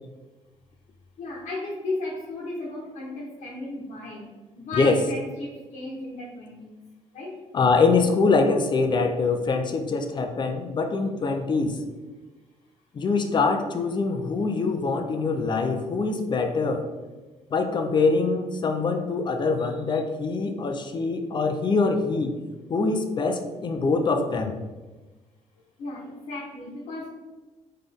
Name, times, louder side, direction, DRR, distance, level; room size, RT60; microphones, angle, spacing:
voice 1, 1.2-6.8 7.1-7.3 25.8-27.1, left 2 dB, 75° left, -6 dB, 1.1 m, -35 dB
voice 2, 7.5-11.8 12.9-16.9 17.5-22.4 22.7-24.5, left 4 dB, 40° left, 6 dB, 0.5 m, -24 dB
4.0 x 3.3 x 3.5 m, 1.2 s
cardioid pair, 100°, 12 cm